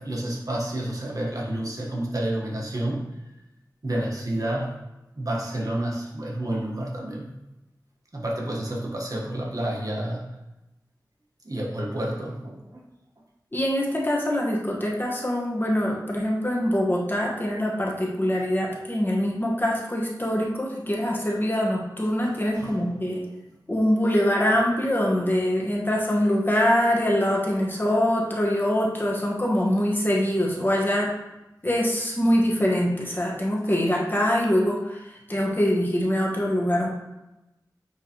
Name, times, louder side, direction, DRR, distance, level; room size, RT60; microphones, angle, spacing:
voice 1, 0.0-3.1 3.8-4.7 5.2-7.3 8.1-10.3 11.4-12.8 22.6-22.8, right 1 dB, 50° right, -2 dB, 1.3 m, -29 dB
voice 2, 13.5-23.2 23.7-31.1 31.6-36.9, equal, 30° left, -2 dB, 1.3 m, -24 dB
9.2 x 3.5 x 3.0 m, 0.96 s
wide cardioid pair, 55°, 7 cm